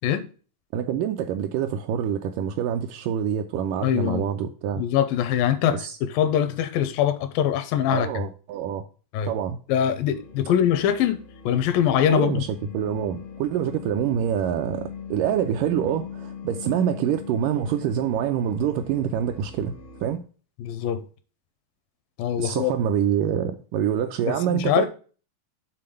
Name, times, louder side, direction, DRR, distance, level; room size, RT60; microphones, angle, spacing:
voice 1, 0.7-4.8 5.7-6.0 7.9-8.8 9.3-9.6 12.1-12.5 12.7-19.8 20.0-20.2 22.4-24.9, right 9 dB, 80° right, 2.0 m, -26 dB
voice 2, 3.8-4.3 4.8-8.1 9.1-9.3 9.7-12.4 20.6-21.0 22.2-22.7 24.3-24.9, left 9 dB, 80° left, 2.3 m, -23 dB
sound 1, 10.1-20.2, left 6 dB, 60° left, 0.7 m, -41 dB
7.7 x 3.8 x 6.3 m
omnidirectional pair, 4.1 m